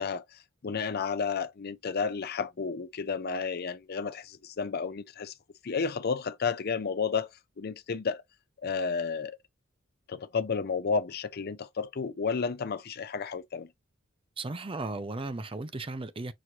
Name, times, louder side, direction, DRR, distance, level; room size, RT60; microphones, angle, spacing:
voice 1, 0.0-5.3 5.6-7.3 7.6-8.2 8.6-9.4 10.1-13.7, left 5 dB, 50° left, 0.5 m, -32 dB
voice 2, 14.4-16.3, right 2 dB, 25° right, 0.6 m, -35 dB
6.1 x 2.6 x 3.0 m
head